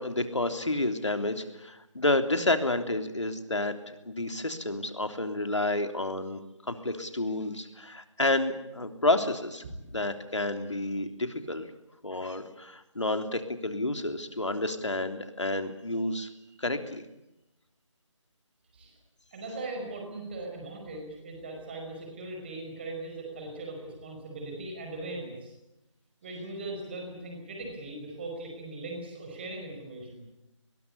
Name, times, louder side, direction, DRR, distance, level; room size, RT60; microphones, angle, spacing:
voice 1, 0.0-6.4 6.7-9.6 9.9-11.7 12.0-16.3 16.6-17.0, left 2 dB, 65° left, 7 dB, 3.4 m, -30 dB
voice 2, 9.6-10.0 18.7-18.9 19.3-25.5 26.2-30.3, right 2 dB, 20° right, 2 dB, 5.2 m, -39 dB
23.5 x 21.5 x 8.3 m, 0.93 s
figure-of-eight pair, 160°, 16 cm